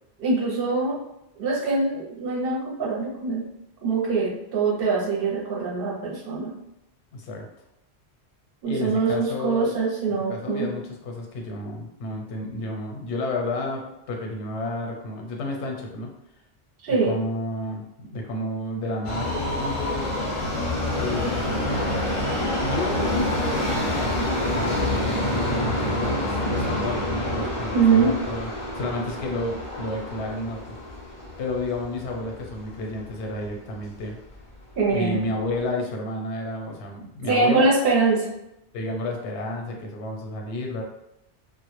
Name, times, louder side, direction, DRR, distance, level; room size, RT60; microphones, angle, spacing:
voice 1, 0.2-1.0 1.4-3.4 3.8-6.5 8.6-10.7 16.8-17.1 27.7-28.1 34.8-35.2 37.3-38.3, right 4 dB, 65° right, -3 dB, 0.7 m, -23 dB
voice 2, 7.1-7.5 8.6-9.8 10.3-16.1 16.9-20.1 20.9-21.7 22.6-30.8 31.4-34.2 34.9-37.7 38.7-40.8, left 1 dB, 85° left, 1 dB, 0.9 m, -31 dB
Subway metro underground, 19.0-33.2 33.5-33.6 34.4-34.5 34.8-34.9 35.5-35.6, left 1 dB, 45° left, 0.4 m, -27 dB
2.1 x 2.0 x 2.9 m, 0.86 s
omnidirectional pair, 1.1 m